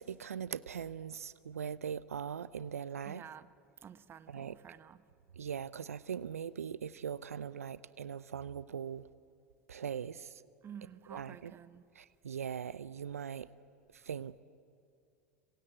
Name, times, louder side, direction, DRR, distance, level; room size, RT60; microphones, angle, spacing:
voice 1, 0.0-3.2 4.3-4.6 5.4-9.1 9.7-10.4 11.1-11.5 11.9-13.5 13.9-14.4, right 8 dB, 80° right, 0.6 m, -40 dB
voice 2, 3.0-3.5 3.8-5.0 10.6-11.8, right 8 dB, 30° right, 1.0 m, -50 dB
26.0 x 25.0 x 8.1 m
hypercardioid pair, 85°, 8 cm